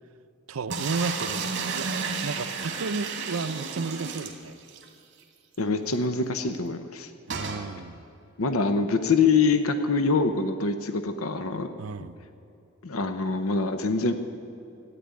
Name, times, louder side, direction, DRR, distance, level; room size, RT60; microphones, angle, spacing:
voice 1, 0.5-4.5 7.3-8.0 11.8-12.2, right 4 dB, 80° right, 12 dB, 0.6 m, -33 dB
sound 1, 0.7-4.9 5.2-5.3 5.5-5.6 7.3-7.6, right 5 dB, 55° right, 1.9 m, -32 dB
voice 2, 5.6-7.1 8.4-11.7 12.8-14.1, left 4 dB, 85° left, 9 dB, 0.8 m, -24 dB
14.0 x 9.4 x 9.6 m, 2.6 s
head